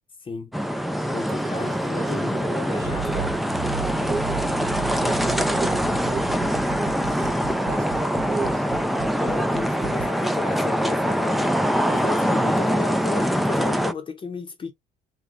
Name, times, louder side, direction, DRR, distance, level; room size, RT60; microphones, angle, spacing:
voice 1, 0.2-0.5 1.1-3.3 9.2-11.5 11.8-14.7, left 5 dB, 30° left, 0.8 m, -34 dB
sound 1, 0.5-13.9, equal, ahead, 0.4 m, -24 dB
voice 2, 1.3-3.3 4.0-4.4 4.9-8.9, right 4 dB, 20° right, 1.3 m, -34 dB
Accelerating revving vroom, 2.8-10.1, right 11 dB, 75° right, 0.6 m, -36 dB
3.9 x 2.2 x 3.0 m
cardioid pair, 110°, 17 cm